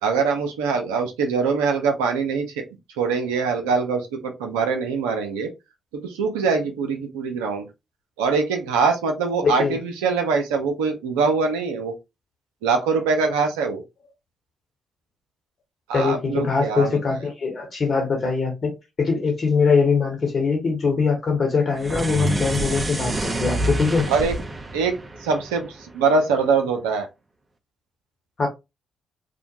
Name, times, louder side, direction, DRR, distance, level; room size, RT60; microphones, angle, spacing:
voice 1, 0.0-2.6 3.0-5.5 6.0-7.7 8.2-11.9 12.6-13.8 15.9-17.0 24.1-24.3 24.7-24.9 25.2-27.1, right 5 dB, 85° right, 0.5 m, -23 dB
voice 2, 9.4-9.8 15.9-24.1 28.4-28.5, left 5 dB, 55° left, 1.2 m, -22 dB
sound 1, 21.7-26.2, right 2 dB, 30° right, 0.6 m, -28 dB
2.5 x 2.1 x 2.8 m
hypercardioid pair, 45°, 0 cm